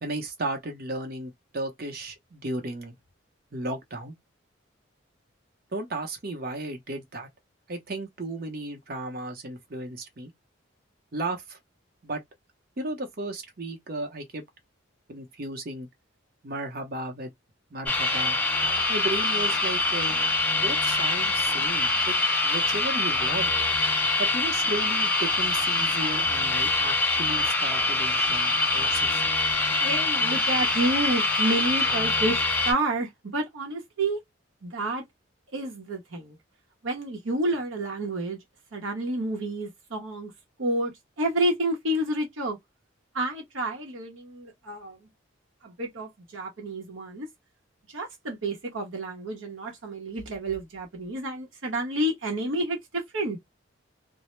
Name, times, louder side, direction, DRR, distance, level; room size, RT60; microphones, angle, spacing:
voice 1, 0.0-3.0 3.5-4.1 5.7-7.3 7.7-10.3 11.1-11.6 12.0-12.2 12.8-14.4 15.1-15.9 16.4-17.3 17.7-18.4 18.9-20.1 20.5-22.1 22.4-23.5 24.2-29.2, right 2 dB, 50° right, 0.7 m, -34 dB
sound 1, 17.9-32.7, left 3 dB, 10° left, 0.4 m, -24 dB
voice 2, 29.8-34.2 34.6-35.0 35.5-36.4 36.8-38.4 38.7-40.3 40.6-40.9 41.2-42.6 43.1-45.0 45.6-47.3 47.9-53.4, right 1 dB, 80° right, 0.8 m, -29 dB
2.1 x 2.0 x 2.9 m
head